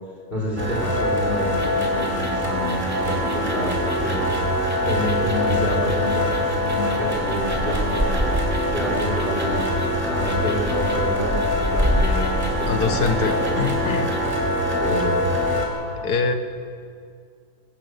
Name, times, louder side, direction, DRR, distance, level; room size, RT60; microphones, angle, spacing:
voice 1, 0.3-3.7 4.0-4.2 4.9-8.2 8.7-9.7 10.0-13.4 14.8-15.1, equal, 30° left, -3 dB, 4.6 m, -28 dB
sound 1, 0.6-15.7, equal, 30° right, 4.1 m, -24 dB
sound 2, 1.5-14.2, equal, 10° right, 2.2 m, -30 dB
voice 2, 12.7-14.2 16.0-16.3, left 5 dB, 75° left, 8 dB, 1.8 m, -24 dB
24.0 x 13.5 x 8.3 m, 2.2 s
omnidirectional pair, 1.7 m